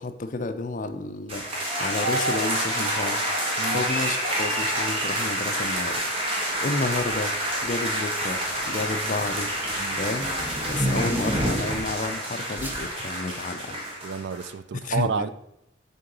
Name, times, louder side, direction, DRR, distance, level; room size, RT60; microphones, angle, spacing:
voice 1, 0.0-1.4 1.8-3.2 3.7-6.0 6.6-7.3 7.6-8.4 8.7-9.5 10.0-10.3 10.7-13.8 14.8-15.3, left 3 dB, 40° left, 9 dB, 0.5 m, -30 dB
sound 1, 1.3-14.5, right 1 dB, 30° right, 1.5 m, -28 dB
sound 2, 5.7-5.9 6.9-7.4 7.7-12.0 12.6-12.8, right 1 dB, 10° right, 0.8 m, -31 dB
voice 2, 14.0-15.3, right 5 dB, 60° right, 14 dB, 0.4 m, -30 dB
6.8 x 3.8 x 5.2 m, 0.82 s
head